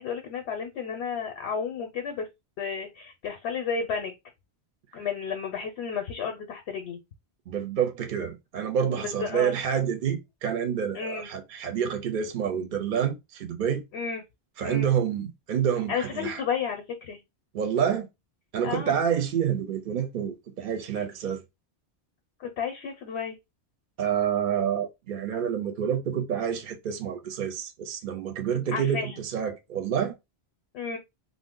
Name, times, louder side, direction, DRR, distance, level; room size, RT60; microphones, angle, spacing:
voice 1, 0.0-2.3 2.6-4.1 4.9-7.0 8.9-9.6 10.9-11.3 13.9-14.2 14.6-14.9 15.9-17.2 18.6-19.0 22.4-23.4 28.7-29.2 30.7-31.0, left 6 dB, 85° left, 0.9 m, -32 dB
voice 2, 7.5-13.8 14.6-16.4 17.5-18.1 18.5-21.4 24.0-30.1, right 8 dB, 60° right, 0.6 m, -28 dB
2.5 x 2.0 x 3.6 m
omnidirectional pair, 1.1 m